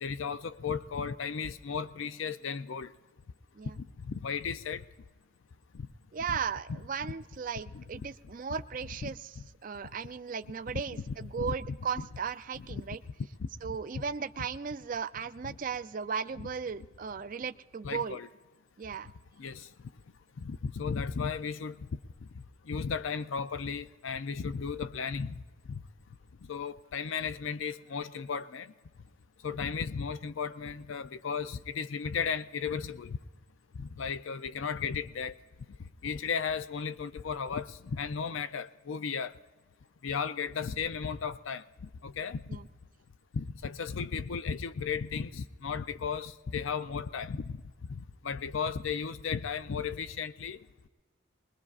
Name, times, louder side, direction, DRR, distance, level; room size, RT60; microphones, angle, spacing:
voice 1, 0.0-2.9 3.8-4.8 6.3-6.4 7.7-7.8 9.0-9.4 11.1-11.5 12.0-12.1 12.6-12.8 13.4-13.5 15.4-15.5 17.8-18.3 19.4-19.7 20.4-21.9 22.7-25.4 25.7-25.8 26.5-28.7 29.4-33.2 33.8-35.4 36.0-39.3 40.0-41.6 42.0-42.6 43.3-47.6 47.9-50.6, left 6 dB, 70° left, 0.5 m, -35 dB
voice 2, 6.1-9.3 9.6-13.0 13.6-18.2 18.8-19.1 42.5-42.6, right 6 dB, 40° right, 0.4 m, -36 dB
22.0 x 21.5 x 2.4 m
head